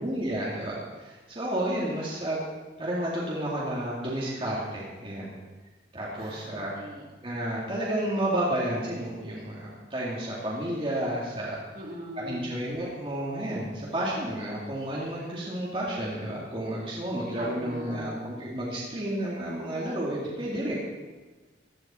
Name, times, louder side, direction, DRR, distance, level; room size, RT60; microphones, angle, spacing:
voice 1, 0.0-2.5 2.8-5.3 5.9-6.7 7.2-11.6 12.2-20.7, right 1 dB, 30° right, -6 dB, 2.4 m, -31 dB
voice 2, 6.2-7.0 11.7-12.6 17.4-18.2, equal, 50° right, -3 dB, 3.2 m, -41 dB
16.0 x 11.5 x 4.4 m, 1.3 s
head